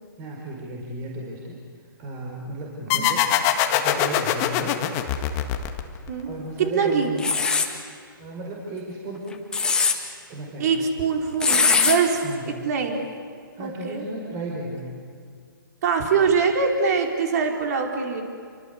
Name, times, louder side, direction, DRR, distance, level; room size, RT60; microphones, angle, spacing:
voice 1, 0.2-1.5 2.0-3.3 3.7-4.8 6.3-7.2 8.2-9.4 10.3-10.7 12.2-12.5 13.5-14.9, right 1 dB, 25° right, -1 dB, 4.9 m, -34 dB
sound 1, 2.9-6.2, left 10 dB, 25° left, 1.8 m, -23 dB
voice 2, 6.6-7.1 10.6-13.0 13.6-14.1 15.8-18.2, right 5 dB, 50° right, 2 dB, 4.9 m, -23 dB
sound 2, 7.2-7.7 9.3-10.0 11.4-12.0, left 5 dB, 5° left, 1.9 m, -20 dB
29.0 x 24.5 x 8.3 m, 2.2 s
hypercardioid pair, 140°, 12 cm